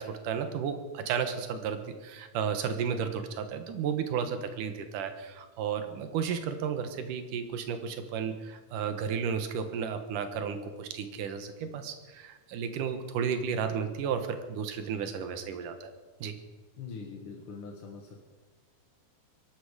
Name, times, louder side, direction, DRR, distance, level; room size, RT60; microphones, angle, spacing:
voice 1, 0.0-15.9 16.2-16.4, right 7 dB, 70° right, 8 dB, 2.6 m, -33 dB
voice 2, 16.8-18.3, left 5 dB, 50° left, 0 dB, 1.7 m, -43 dB
22.0 x 12.5 x 5.0 m, 1.3 s
omnidirectional pair, 4.1 m